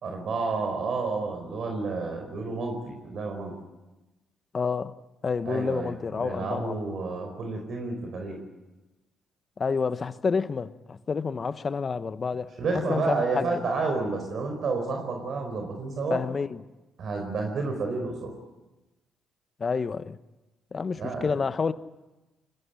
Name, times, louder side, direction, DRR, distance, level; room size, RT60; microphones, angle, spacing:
voice 1, 0.0-3.5 5.4-8.4 12.6-16.2 17.0-18.3 20.9-21.3, right 3 dB, 60° right, 4.7 m, -30 dB
voice 2, 4.5-5.0 5.2-6.8 9.6-12.5 12.9-13.6 16.1-16.6 19.6-20.2 20.7-21.7, left 5 dB, 40° left, 1.1 m, -29 dB
23.0 x 18.0 x 9.8 m
cardioid pair, 75°, 0 cm